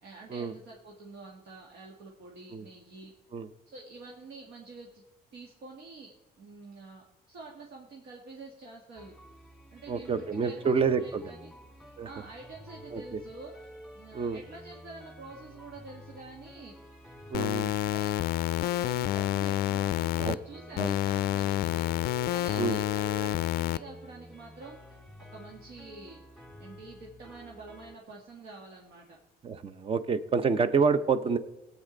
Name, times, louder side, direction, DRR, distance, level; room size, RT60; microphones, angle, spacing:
voice 1, 0.0-3.1 3.7-5.0 5.3-9.1 9.7-11.5 11.8-13.7 13.9-16.8 17.2-18.1 18.6-21.9 22.3-24.8 25.3-26.2 26.6-29.2, right 3 dB, 70° right, -2 dB, 1.7 m, -47 dB
sound 1, 9.0-28.0, equal, ahead, 1.7 m, -50 dB
voice 2, 9.9-11.2 12.0-12.1 12.9-13.2 14.1-14.4 17.3-17.7 20.2-20.4 20.8-20.9 22.6-22.8 29.4-31.4, right 5 dB, 35° right, 12 dB, 0.8 m, -28 dB
sound 2, 17.3-20.3 20.8-23.8, left 13 dB, 65° left, 0.4 m, -29 dB
19.0 x 8.4 x 3.9 m, 1.0 s
cardioid pair, 110°, 17 cm